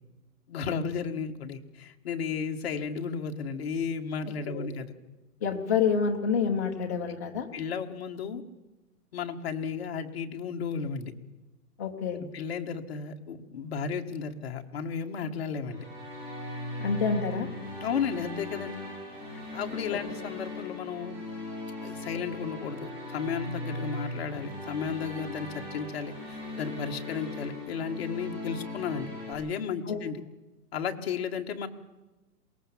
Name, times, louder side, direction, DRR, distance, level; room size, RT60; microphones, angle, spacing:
voice 1, 0.5-4.9 7.5-8.4 9.1-11.1 12.1-15.8 17.8-18.8 19.5-21.2 21.8-30.2 30.7-31.7, left 6 dB, 40° left, 4 dB, 1.5 m, -34 dB
voice 2, 5.4-7.5 11.8-12.2 16.8-17.5 29.9-30.0, left 6 dB, 10° left, 0 dB, 0.7 m, -28 dB
sound 1, 15.7-29.3, left 2 dB, 10° right, 7.2 m, -38 dB
21.5 x 18.5 x 7.3 m, 1.1 s
hypercardioid pair, 175°, 47 cm